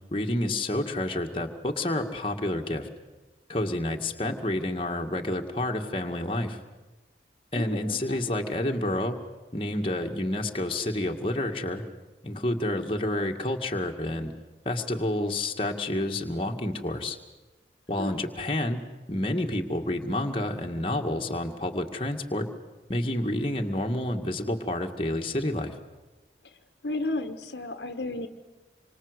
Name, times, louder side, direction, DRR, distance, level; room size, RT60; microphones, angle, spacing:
voice 1, 0.1-2.9 3.5-6.6 7.5-9.2 9.5-11.8 12.2-14.3 14.7-17.2 17.9-18.8 19.1-22.5 22.9-25.8, left 1 dB, 30° left, 2 dB, 2.1 m, -29 dB
voice 2, 7.5-8.2 18.0-18.2 26.8-28.3, left 2 dB, 75° left, 8 dB, 1.5 m, -33 dB
27.0 x 25.0 x 8.2 m, 1.2 s
head